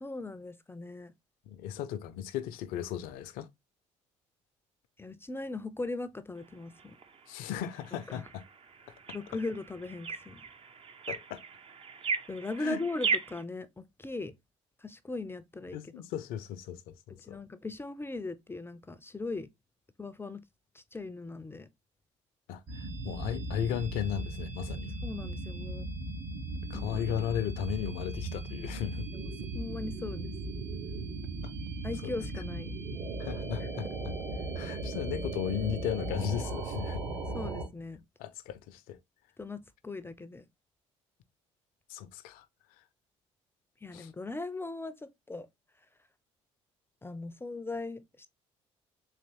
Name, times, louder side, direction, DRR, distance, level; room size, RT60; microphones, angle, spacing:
voice 1, 0.0-1.1 5.0-7.0 8.1-8.2 9.1-10.4 12.3-14.3 14.8-15.8 17.2-19.5 20.0-20.4 20.7-21.7 25.0-25.9 26.7-26.9 29.1-30.3 31.8-32.7 37.3-38.0 39.4-40.4 43.8-45.5 47.0-48.3, left 3 dB, 15° left, 0.5 m, -39 dB
voice 2, 1.5-3.5 7.3-8.4 11.1-11.4 12.6-12.8 15.7-17.4 22.5-24.9 26.7-29.1 32.0-32.1 33.2-33.9 34.6-37.0 38.2-39.0 41.9-42.4 43.9-44.1, left 10 dB, 70° left, 0.5 m, -36 dB
sound 1, 6.4-13.4, right 5 dB, 35° right, 0.6 m, -38 dB
sound 2, 22.7-37.7, right 2 dB, 55° right, 1.5 m, -37 dB
4.0 x 3.0 x 2.8 m
hypercardioid pair, 55°, 16 cm